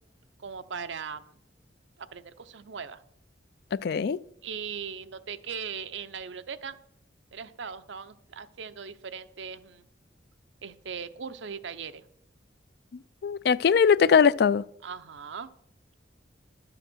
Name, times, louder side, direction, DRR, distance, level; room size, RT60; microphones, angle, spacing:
voice 1, 0.4-1.3 2.0-3.0 4.4-6.8 7.3-9.9 10.6-12.0 13.4-13.6 14.8-15.5, right 6 dB, 75° right, 0.7 m, -39 dB
voice 2, 3.8-4.2 13.2-14.6, left 6 dB, 55° left, 0.3 m, -21 dB
12.0 x 7.8 x 6.2 m
head